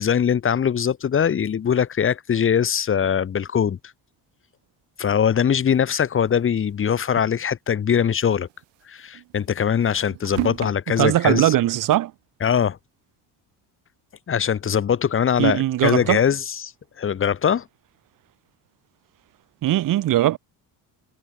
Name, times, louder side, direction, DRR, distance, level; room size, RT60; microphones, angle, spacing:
voice 1, 0.0-3.8 5.0-8.5 8.9-11.5 12.4-12.8 14.3-16.7 17.0-17.6, left 8 dB, 30° left, 2.2 m, -21 dB
sound 1, 5.6-6.7 7.1-7.2 7.4-7.5 8.1-10.7, right 21 dB, 80° right, 3.5 m, -34 dB
voice 2, 11.0-12.1 15.4-16.2 19.6-20.4, right 13 dB, 50° right, 1.9 m, -20 dB
cardioid pair, 155°, 42 cm